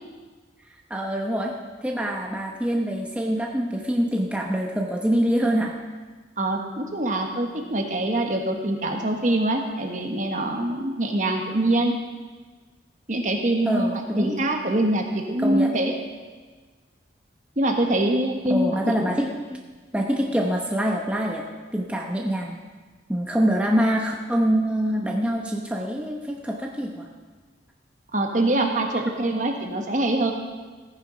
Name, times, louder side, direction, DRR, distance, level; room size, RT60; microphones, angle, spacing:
voice 1, 0.9-1.6 1.8-5.7 13.6-14.4 15.4-15.7 18.5-19.6 19.9-21.5 21.7-22.6 23.1-27.1, equal, 5° right, 0 dB, 0.9 m, -25 dB
voice 2, 6.4-11.9 13.1-15.9 17.6-19.2 28.1-30.3, right 1 dB, 40° right, 3 dB, 1.4 m, -24 dB
15.5 x 9.6 x 5.1 m, 1.4 s
head